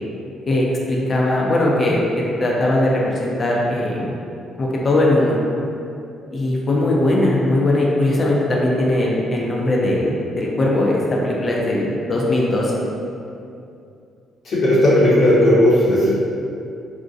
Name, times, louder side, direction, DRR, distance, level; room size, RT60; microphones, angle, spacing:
voice 1, 0.5-2.0 2.4-4.1 4.6-5.4 6.3-12.7, left 1 dB, 40° left, -3 dB, 0.5 m, -19 dB
voice 2, 14.4-16.2, left 1 dB, 65° left, -9 dB, 0.8 m, -15 dB
2.6 x 2.1 x 2.4 m, 2.6 s
cardioid pair, 85°, 0 cm